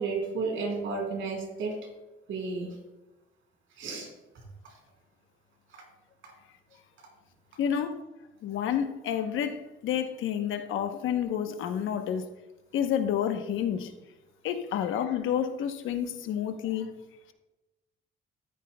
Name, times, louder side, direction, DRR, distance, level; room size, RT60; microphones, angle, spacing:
voice 1, 0.0-1.7 2.3-2.7 3.8-4.1, right 4 dB, 80° right, 3.5 m, -32 dB
voice 2, 7.6-8.0 8.4-12.3 12.7-13.9 14.4-16.9, left 9 dB, 85° left, 0.9 m, -29 dB
13.0 x 9.4 x 2.2 m
cardioid pair, 90°, 20 cm